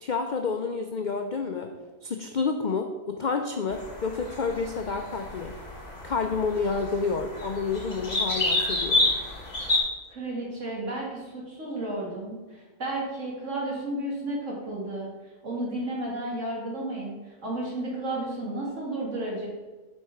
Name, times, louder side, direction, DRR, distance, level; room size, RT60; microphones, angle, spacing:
voice 1, 0.0-1.7 2.0-5.5 6.0-9.1, left 4 dB, 85° left, 5 dB, 0.4 m, -29 dB
sound 1, 3.7-9.8, left 2 dB, 65° left, 2.9 m, -29 dB
voice 2, 10.1-15.1 15.4-19.5, right 1 dB, 55° right, -3 dB, 2.2 m, -32 dB
7.7 x 4.5 x 5.7 m, 1.2 s
omnidirectional pair, 1.5 m